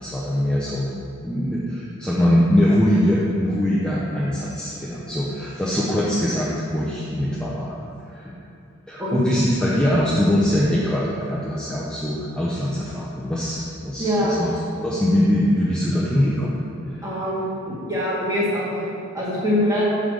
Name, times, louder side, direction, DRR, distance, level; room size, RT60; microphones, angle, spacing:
voice 1, 0.0-7.7 8.1-8.3 8.9-14.1 14.4-14.5 14.8-17.1, equal, 5° left, -7 dB, 0.6 m, -22 dB
voice 2, 9.0-9.3 14.0-14.3 17.0-19.8, left 1 dB, 15° right, -7 dB, 1.7 m, -24 dB
5.6 x 5.0 x 6.4 m, 2.6 s
head